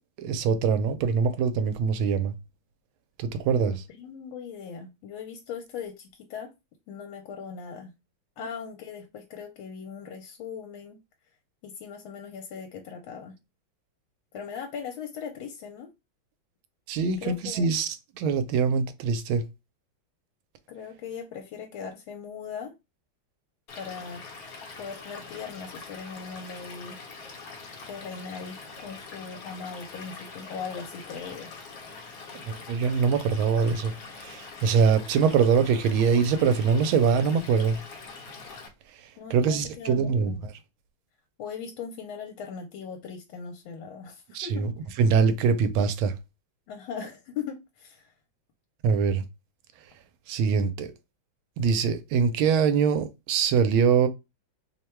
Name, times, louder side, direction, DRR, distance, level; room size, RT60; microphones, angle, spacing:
voice 1, 0.2-2.3 3.2-3.8 16.9-19.4 32.5-37.8 39.3-40.5 44.3-44.7 45.0-46.1 48.8-49.2 50.3-50.9 51.6-54.1, right 6 dB, 85° right, 1.4 m, -23 dB
voice 2, 3.5-6.5 6.9-7.9 8.4-11.0 11.6-13.4 14.3-15.9 17.2-17.7 20.7-22.7 23.7-24.2 24.8-27.0 27.9-31.5 39.2-40.4 41.4-44.7 46.7-48.1, left 6 dB, 80° left, 1.4 m, -39 dB
Stream / Liquid, 23.7-38.7, left 4 dB, 60° left, 1.1 m, -44 dB
3.3 x 2.2 x 4.3 m
omnidirectional pair, 2.2 m